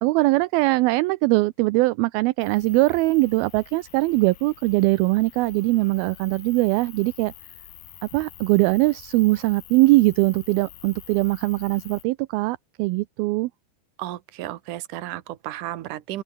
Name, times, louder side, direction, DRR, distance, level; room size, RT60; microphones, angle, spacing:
voice 1, 0.0-7.3 8.0-13.5, right 21 dB, 80° right, 2.2 m, -21 dB
sound 1, 2.4-12.0, left 13 dB, 70° left, 3.2 m, -47 dB
voice 2, 14.0-16.2, right 14 dB, 65° right, 2.4 m, -33 dB
open air
omnidirectional pair, 4.8 m